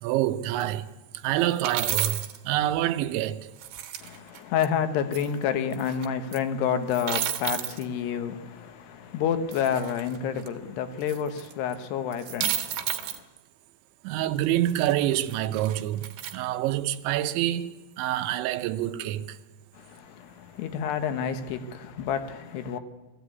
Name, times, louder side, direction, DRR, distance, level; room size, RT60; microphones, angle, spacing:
voice 1, 0.0-0.9 1.1-3.5 14.0-19.4, right 13 dB, 85° right, 3.1 m, -27 dB
sound 1, 0.6-0.7 1.4-2.4 3.6-4.7 5.1-5.3 5.7-6.1 6.3-6.4 6.9-7.8 9.5-10.5 11.1-11.7 12.1-13.2 14.4-16.4, right 11 dB, 65° right, 3.0 m, -32 dB
voice 2, 4.0-13.2 19.7-22.8, left 8 dB, 75° left, 3.0 m, -29 dB
21.5 x 14.5 x 9.4 m
omnidirectional pair, 5.2 m